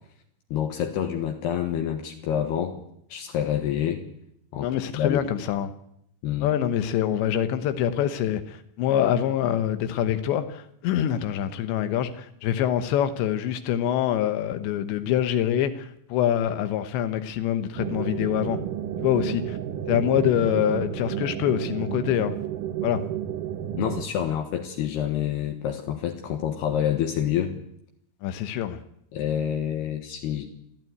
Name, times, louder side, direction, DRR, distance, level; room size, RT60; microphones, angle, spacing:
voice 1, 0.5-2.7 3.1-4.0 4.5-4.7 4.9-5.2 6.2-6.5 23.8-27.6 29.1-30.5, left 10 dB, 75° left, 4 dB, 3.3 m, -27 dB
voice 2, 4.6-5.7 6.4-18.6 19.0-19.6 19.9-22.3 22.8-23.0 28.2-28.8, left 10 dB, 90° left, 10 dB, 3.3 m, -25 dB
sound 1, 17.8-24.0, right 10 dB, 65° right, 2.3 m, -31 dB
29.5 x 12.5 x 9.3 m, 0.74 s
omnidirectional pair, 5.0 m